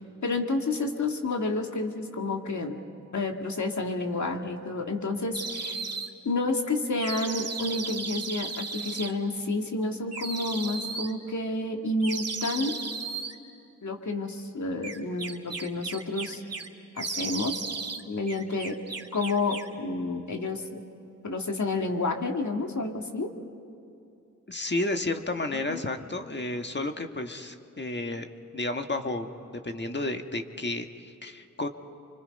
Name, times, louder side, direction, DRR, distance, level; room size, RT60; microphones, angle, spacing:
voice 1, 0.2-2.8 3.1-5.8 6.2-12.8 13.8-16.4 17.0-17.6 18.1-18.8 19.1-20.8 21.2-23.3 25.5-25.8, left 2 dB, 65° left, 3 dB, 2.1 m, -30 dB
sound 1, 5.3-6.1 7.0-9.1 10.1-11.1 12.0-13.3 14.8-16.7 17.0-18.0 18.3-19.7, right 4 dB, 50° right, 2.0 m, -35 dB
voice 2, 24.5-28.3 28.5-29.3 29.6-31.7, left 2 dB, 35° left, 5 dB, 1.6 m, -31 dB
29.5 x 24.5 x 5.4 m, 2.6 s
cardioid pair, 40°, 31 cm